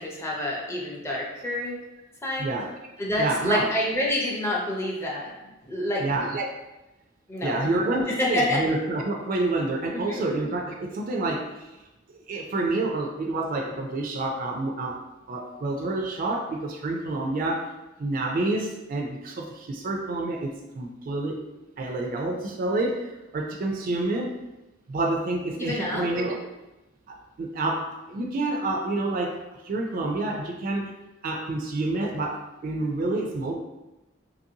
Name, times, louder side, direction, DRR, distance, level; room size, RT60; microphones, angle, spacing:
voice 1, 0.0-1.8 2.2-2.5 3.0-5.3 5.6-6.0 7.3-7.7 8.1-8.6 9.9-10.3 25.6-26.1, left 1 dB, 15° left, -3 dB, 0.5 m, -28 dB
voice 2, 2.4-2.9 3.2-3.7 6.0-6.5 7.4-11.7 12.3-17.7 18.0-21.4 21.8-24.4 24.9-26.5 27.1-30.9 31.2-33.6, right 2 dB, 45° right, 1 dB, 0.3 m, -28 dB
2.9 x 2.6 x 2.7 m, 1.0 s
head